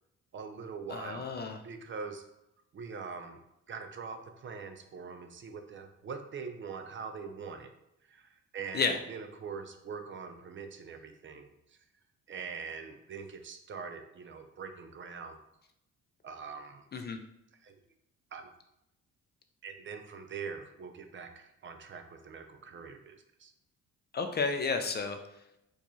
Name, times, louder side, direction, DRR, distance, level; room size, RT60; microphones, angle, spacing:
voice 1, 0.3-1.3 1.6-2.2 2.7-3.4 3.7-7.7 8.1-11.5 12.3-15.4 16.2-16.9 17.6-17.7 18.3-18.5 19.6-23.5, right 5 dB, 40° right, 7 dB, 0.4 m, -43 dB
voice 2, 0.9-1.6 8.7-9.0 16.9-17.2 24.1-25.2, left 4 dB, 35° left, 6 dB, 0.4 m, -31 dB
4.5 x 2.4 x 2.7 m, 0.83 s
cardioid pair, 90°, 30 cm